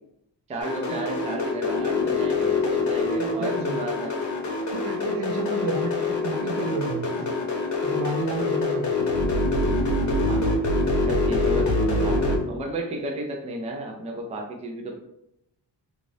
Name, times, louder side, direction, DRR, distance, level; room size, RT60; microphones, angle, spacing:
voice 1, 0.5-4.1 9.3-9.4 10.2-10.6 10.9-15.0, right 1 dB, 15° right, 1 dB, 0.3 m, -33 dB
sound 1, 0.6-12.4, left 2 dB, 45° left, 0.8 m, -25 dB
voice 2, 3.2-3.9 4.7-7.3 7.8-9.1, right 3 dB, 75° right, 2 dB, 0.7 m, -32 dB
2.6 x 2.5 x 3.1 m, 0.82 s
cardioid pair, 140°, 41 cm